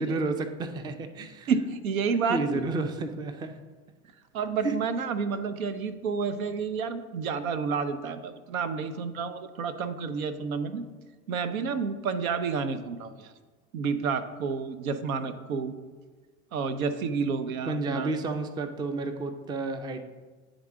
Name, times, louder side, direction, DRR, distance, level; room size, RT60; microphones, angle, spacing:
voice 1, 0.0-1.5 2.3-3.5 4.6-4.7 17.7-20.0, right 3 dB, 10° right, 9 dB, 0.3 m, -31 dB
voice 2, 1.5-2.6 4.3-10.9 11.3-13.3 13.7-15.7 16.5-18.1, right 5 dB, 85° right, 11 dB, 0.6 m, -30 dB
9.5 x 3.8 x 3.6 m, 1.4 s
hypercardioid pair, 85°, 41 cm